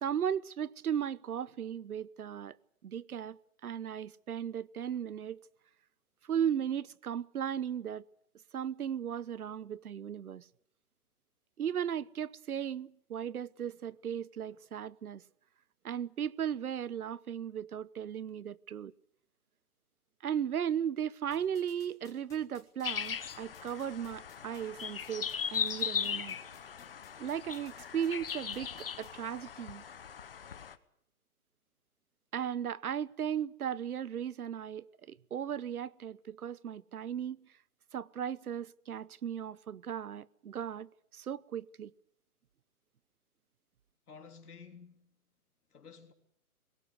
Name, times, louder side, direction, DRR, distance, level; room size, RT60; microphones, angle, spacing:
voice 1, 0.0-2.6 2.8-5.4 6.3-8.0 8.5-10.5 11.6-15.2 15.8-18.9 20.2-26.4 27.2-29.8 32.3-37.5 37.9-41.9, right 9 dB, 75° right, 0.9 m, -36 dB
sound 1, 21.3-29.1, left 8 dB, 5° left, 3.0 m, -58 dB
sound 2, 22.8-30.7, left 7 dB, 40° left, 1.0 m, -38 dB
voice 2, 44.1-45.2 45.7-46.1, left 5 dB, 85° left, 3.5 m, -52 dB
21.5 x 18.0 x 8.1 m
hypercardioid pair, 175°, 44 cm